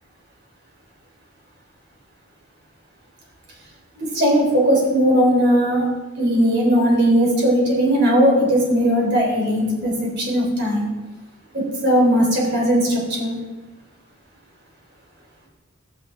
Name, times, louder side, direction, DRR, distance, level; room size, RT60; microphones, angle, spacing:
voice 1, 4.0-5.8 6.2-10.9 11.5-13.3, equal, 50° right, -3 dB, 3.3 m, -18 dB
12.5 x 9.2 x 3.4 m, 1.2 s
head